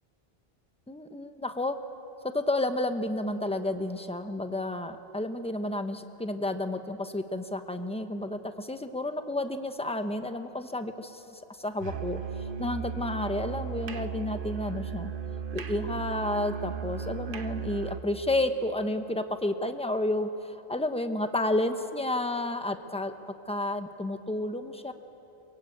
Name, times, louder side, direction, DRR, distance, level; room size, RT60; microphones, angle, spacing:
voice 1, 0.9-1.7 2.3-15.1 15.5-23.1 23.5-24.9, left 1 dB, 5° left, 8 dB, 1.0 m, -31 dB
Musical instrument, 11.8-18.1, right 7 dB, 60° right, 1.1 m, -36 dB
23.0 x 22.0 x 8.7 m, 3.0 s
omnidirectional pair, 1.0 m